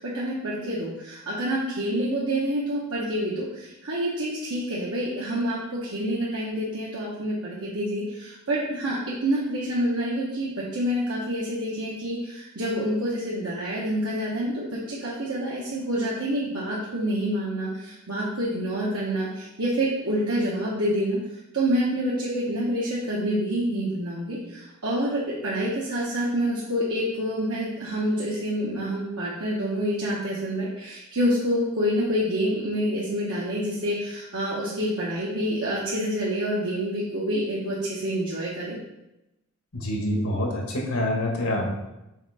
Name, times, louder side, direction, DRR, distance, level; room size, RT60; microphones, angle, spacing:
voice 1, 0.0-21.2 21.5-38.7, equal, 75° right, -7 dB, 1.2 m, -27 dB
voice 2, 39.7-41.7, left 1 dB, 80° left, 0 dB, 1.6 m, -26 dB
5.8 x 4.2 x 4.2 m, 0.93 s
head